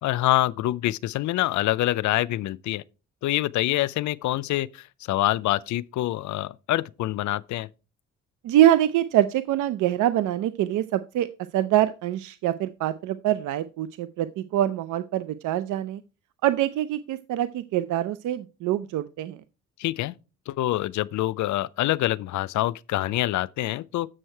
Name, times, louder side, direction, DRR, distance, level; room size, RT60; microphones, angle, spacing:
voice 1, 0.0-2.8 3.2-7.7 19.8-20.1 20.5-24.1, left 15 dB, 70° left, 0.5 m, -26 dB
voice 2, 8.4-11.3 11.5-16.0 16.4-19.4, right 12 dB, 80° right, 0.5 m, -24 dB
7.7 x 6.4 x 4.5 m
cardioid pair, 90°, 30 cm